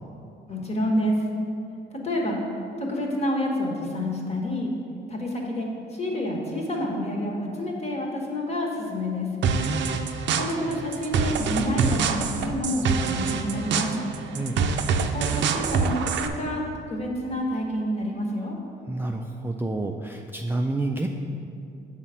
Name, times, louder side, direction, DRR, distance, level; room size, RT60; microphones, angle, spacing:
voice 1, 0.5-1.2 2.0-2.4 2.8-4.7 5.1-9.3 10.3-13.9 15.1-18.6, left 1 dB, 30° left, 0 dB, 1.4 m, -28 dB
sound 1, 9.4-16.3, right 6 dB, 65° right, 0.5 m, -26 dB
voice 2, 9.6-9.9 14.3-14.6 18.9-21.1, right 2 dB, 10° right, 2 dB, 0.3 m, -29 dB
7.3 x 4.0 x 5.6 m, 2.6 s
cardioid pair, 90°, 20 cm